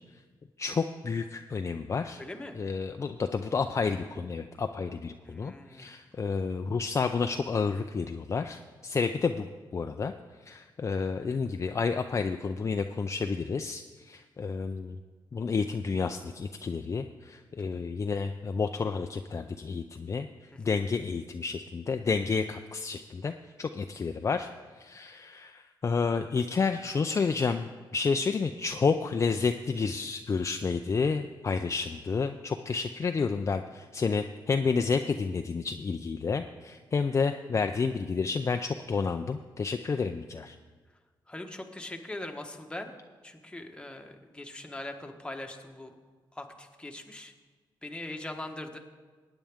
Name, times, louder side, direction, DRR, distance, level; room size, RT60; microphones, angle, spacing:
voice 1, 0.6-2.2 2.5-9.5 9.7-10.1 10.5-15.0 15.3-20.3 20.6-23.3 23.6-24.5 24.8-40.6, left 5 dB, 35° left, 6 dB, 0.4 m, -30 dB
voice 2, 2.2-2.6 5.2-5.9 17.7-17.8 41.3-42.9 43.2-45.9 46.4-47.3 47.8-48.8, left 1 dB, 10° left, 4 dB, 1.2 m, -41 dB
19.5 x 9.0 x 3.6 m, 1.4 s
cardioid pair, 95°, 8 cm